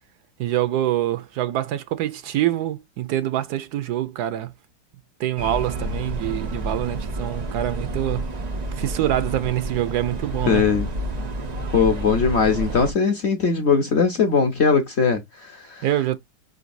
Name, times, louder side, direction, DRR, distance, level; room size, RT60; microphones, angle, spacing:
voice 1, 0.4-4.5 5.2-8.3 8.7-10.7 15.8-16.2, right 13 dB, 75° right, 1.1 m, -25 dB
sound 1, 5.4-12.9, right 1 dB, 90° right, 0.3 m, -29 dB
voice 2, 10.5-10.9 11.7-15.8, left 5 dB, 50° left, 0.9 m, -20 dB
5.1 x 3.9 x 2.5 m
omnidirectional pair, 1.9 m